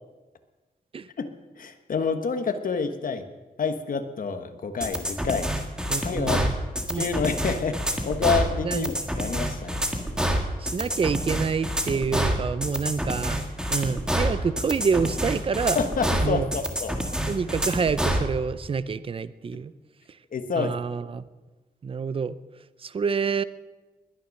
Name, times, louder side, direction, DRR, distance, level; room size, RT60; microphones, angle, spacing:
voice 1, 1.6-3.2 3.6-5.5 6.0-6.6 7.0-9.9 15.7-17.0 20.3-20.8, left 5 dB, 60° left, 8 dB, 1.3 m, -28 dB
sound 1, 4.8-18.3, equal, 5° right, 1.6 m, -27 dB
voice 2, 5.9-6.5 6.9-7.1 8.6-8.9 10.6-13.4 13.7-15.8 16.2-16.5 17.3-19.7 20.6-21.2 21.8-22.3 22.8-23.4, right 5 dB, 35° right, 15 dB, 0.5 m, -27 dB
20.5 x 10.0 x 6.5 m, 1.2 s
wide cardioid pair, 175°, 16 cm